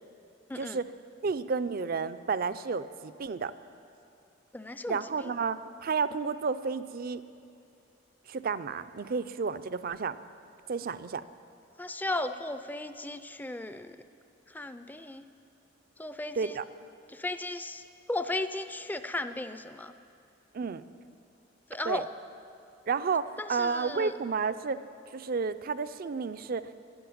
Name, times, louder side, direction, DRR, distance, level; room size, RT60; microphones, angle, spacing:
voice 1, 1.2-3.5 4.9-7.2 8.3-10.2 10.7-11.2 16.4-16.6 20.5-20.8 21.8-22.0 22.9-24.8 25.1-26.7, right 5 dB, 50° right, 13 dB, 0.5 m, -31 dB
voice 2, 4.5-5.3 11.8-14.0 14.5-15.2 16.0-16.6 17.1-17.8 18.1-19.9 21.7-22.1 23.4-24.1, left 2 dB, 10° left, 10 dB, 0.4 m, -35 dB
12.0 x 11.0 x 8.6 m, 2.5 s
head